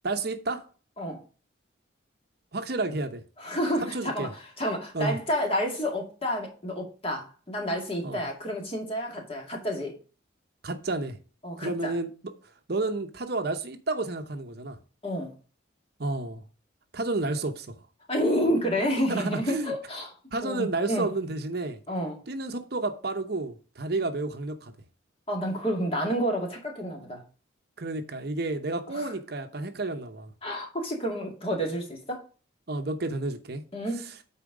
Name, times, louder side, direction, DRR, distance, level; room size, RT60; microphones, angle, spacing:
voice 1, 0.0-0.6 2.5-3.2 3.8-4.3 4.9-5.2 8.0-8.3 10.6-11.2 11.6-12.1 12.7-14.8 16.0-16.4 16.9-17.7 19.1-19.7 20.3-21.8 22.3-24.7 27.8-30.3 32.7-33.6 33.9-34.2, right 2 dB, 50° right, 0.8 m, -31 dB
voice 2, 3.4-4.3 4.6-9.9 11.4-11.9 15.0-15.3 18.1-20.1 20.4-21.1 21.9-22.2 25.3-27.2 28.9-29.1 30.4-32.2 33.7-34.0, equal, 30° left, 2.2 m, -29 dB
9.0 x 4.3 x 4.9 m
head